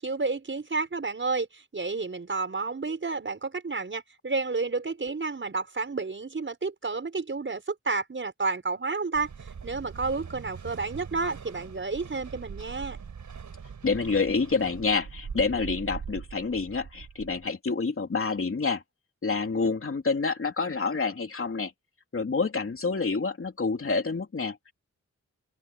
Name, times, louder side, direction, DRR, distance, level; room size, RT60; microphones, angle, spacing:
voice 1, 0.0-9.3 9.6-13.0, right 4 dB, 40° right, 6.2 m, -31 dB
sound 1, 9.1-17.4, right 6 dB, 90° right, 5.5 m, -42 dB
voice 2, 13.8-18.8 19.2-21.7 22.1-24.7, left 4 dB, 50° left, 3.1 m, -28 dB
wide cardioid pair, 120°, 29 cm